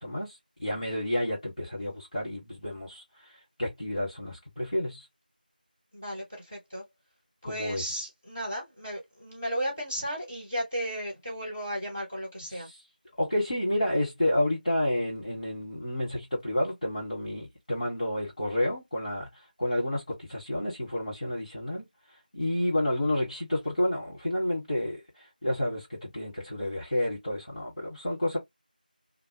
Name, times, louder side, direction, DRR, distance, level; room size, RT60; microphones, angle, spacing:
voice 1, 0.0-3.0 3.6-5.1 7.4-7.8 13.2-19.3 19.6-21.9 22.3-25.0 25.4-28.4, left 1 dB, 50° left, 1.4 m, -30 dB
voice 2, 5.9-6.8 7.4-12.7, equal, 15° left, 0.8 m, -34 dB
2.4 x 2.1 x 2.8 m
figure-of-eight pair, 175°, 5 cm